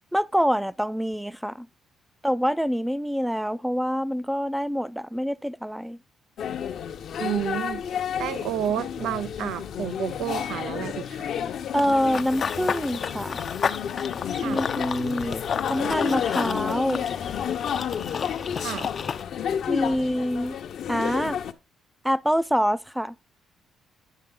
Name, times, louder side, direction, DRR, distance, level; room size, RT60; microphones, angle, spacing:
voice 1, 0.1-1.7 2.2-6.0 11.7-13.4 14.4-15.4 15.7-17.0 19.7-20.6 20.9-21.4 22.0-23.2, equal, 5° right, 0.4 m, -26 dB
sound 1, 6.4-21.5, left 8 dB, 70° left, 0.8 m, -31 dB
voice 2, 7.2-11.3 14.3-14.6 18.5-18.9, right 10 dB, 85° right, 0.5 m, -31 dB
Run / Bird vocalization bird call bird song, 11.8-19.2, left 6 dB, 45° left, 0.5 m, -32 dB
10.0 x 6.3 x 3.8 m
cardioid pair, 90°, 0 cm